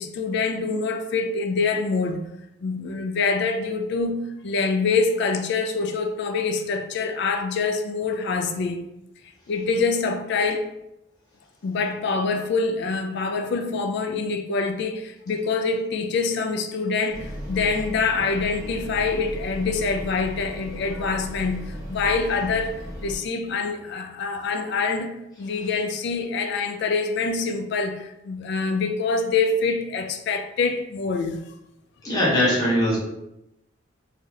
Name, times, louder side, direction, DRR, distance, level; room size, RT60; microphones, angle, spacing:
voice 1, 0.0-2.2 2.6-8.8 9.5-10.7 11.6-25.1 25.4-31.4, left 4 dB, 60° left, 0.3 m, -25 dB
sound 1, 17.1-23.2, equal, 20° right, 0.8 m, -36 dB
voice 2, 32.0-33.0, left 1 dB, 20° left, 0.8 m, -20 dB
2.7 x 2.4 x 3.1 m
head